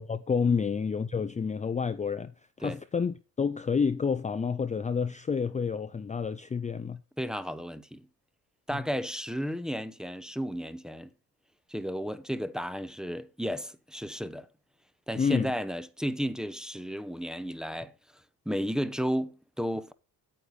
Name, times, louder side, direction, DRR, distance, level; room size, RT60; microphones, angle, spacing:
voice 1, 0.0-2.3 2.6-7.0 15.2-15.5, left 5 dB, 20° left, 0.5 m, -29 dB
voice 2, 7.2-8.1 8.7-11.1 11.7-14.5 15.1-17.9 18.5-19.9, equal, ahead, 0.8 m, -33 dB
9.1 x 8.7 x 4.0 m
cardioid pair, 105°, 35 cm